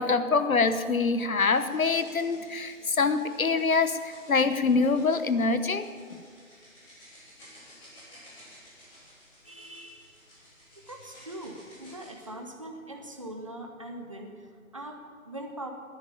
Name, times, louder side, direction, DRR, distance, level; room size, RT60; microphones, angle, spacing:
voice 1, 0.0-6.2, left 4 dB, 75° left, 11 dB, 1.1 m, -25 dB
sound 1, 1.3-12.3, equal, 15° left, 4.3 m, -54 dB
voice 2, 9.4-10.5 10.7-15.7, right 1 dB, 25° right, 3 dB, 0.8 m, -42 dB
12.5 x 10.0 x 8.3 m, 2.1 s
figure-of-eight pair, 165°, 42 cm